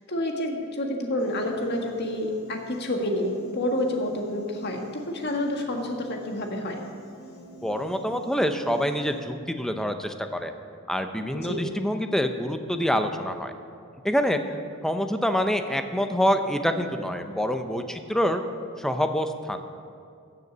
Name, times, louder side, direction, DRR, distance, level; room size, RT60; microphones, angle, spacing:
voice 1, 0.1-6.8 11.3-11.6, left 1 dB, 50° left, 2 dB, 1.7 m, -29 dB
Piano, 1.2-9.2, equal, 85° left, 2.6 m, -47 dB
voice 2, 7.6-10.5 10.9-13.5 14.0-14.6 14.8-18.4 18.8-19.6, equal, ahead, 7 dB, 0.6 m, -26 dB
15.0 x 6.9 x 7.3 m, 2.3 s
head